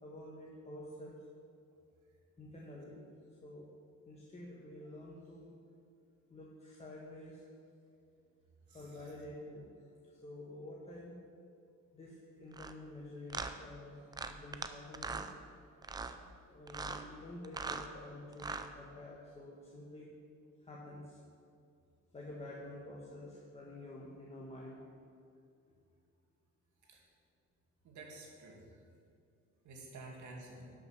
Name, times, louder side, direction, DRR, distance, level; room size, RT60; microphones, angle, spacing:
voice 1, 0.0-1.2 2.4-3.0 3.4-3.7 4.1-5.5 6.3-7.5 8.7-9.7 10.0-11.2 11.9-15.3 16.4-20.1 20.6-21.2 22.1-25.0 25.7-25.8, left 1 dB, 20° left, -4 dB, 1.3 m, -49 dB
voice 2, 8.7-9.1 26.9-27.0 27.8-28.6 29.6-30.7, right 2 dB, 70° right, -1 dB, 2.4 m, -51 dB
sound 1, 12.5-12.7 13.3-13.5 14.1-14.7 14.9-15.3 15.8-16.1 16.7-17.0 17.4-17.9 18.3-18.7, right 4 dB, 15° right, 0.4 m, -40 dB
11.5 x 6.2 x 5.9 m, 2.4 s
cardioid pair, 145°, 31 cm